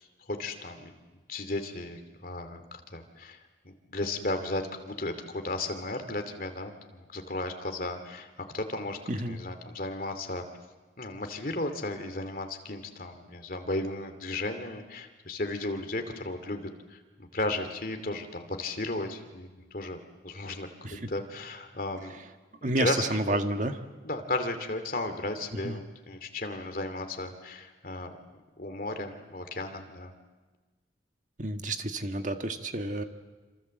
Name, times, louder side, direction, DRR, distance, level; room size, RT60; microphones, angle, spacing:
voice 1, 0.3-0.9 1.3-3.4 3.6-9.0 9.2-10.5 11.0-16.6 16.9-20.0 20.2-22.1 22.6-23.5 24.0-28.2 28.6-30.1, left 2 dB, 50° left, 6 dB, 2.7 m, -35 dB
voice 2, 9.1-9.4 20.8-21.1 22.6-23.8 25.6-25.8 31.4-33.0, right 1 dB, 40° right, 6 dB, 1.7 m, -30 dB
27.0 x 27.0 x 7.9 m, 1.3 s
head